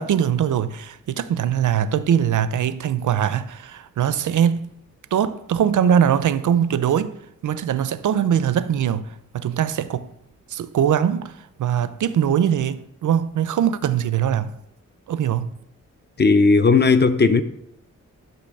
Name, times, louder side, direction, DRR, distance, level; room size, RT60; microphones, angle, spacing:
voice 1, 0.0-4.7 5.1-7.1 7.4-9.1 9.3-10.1 10.5-11.3 11.6-14.5 15.1-15.5, right 9 dB, 75° right, 0.4 m, -21 dB
voice 2, 16.2-17.4, left 4 dB, 35° left, 0.4 m, -15 dB
8.5 x 3.0 x 6.4 m
wide cardioid pair, 160°, 31 cm